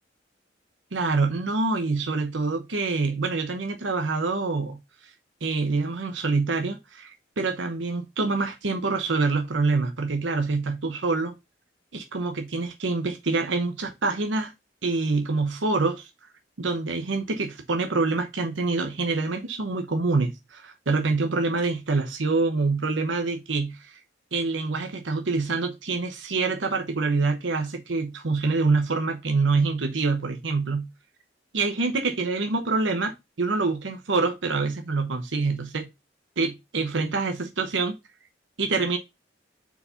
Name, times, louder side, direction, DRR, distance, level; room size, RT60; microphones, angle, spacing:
voice 1, 0.9-5.1 5.4-11.3 11.9-14.5 14.8-16.1 16.6-24.0 24.3-30.9 31.5-35.9 36.4-37.9 38.6-39.0, right 3 dB, 80° right, 0.9 m, -26 dB
4.7 x 4.2 x 5.5 m
head